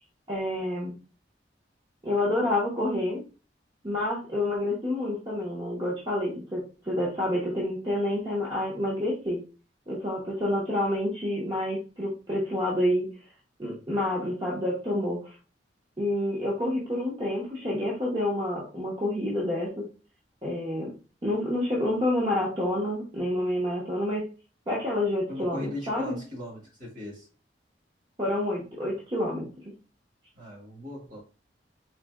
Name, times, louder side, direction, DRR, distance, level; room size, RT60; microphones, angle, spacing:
voice 1, 0.3-0.9 2.0-3.2 3.8-9.4 9.9-13.1 13.6-15.3 16.0-19.9 20.4-20.9 21.2-24.3 24.7-26.2 28.2-29.5, left 1 dB, 25° right, 0.8 m, -28 dB
voice 2, 25.3-27.3 30.3-31.2, left 1 dB, 45° right, 1.5 m, -38 dB
3.9 x 2.7 x 2.3 m
head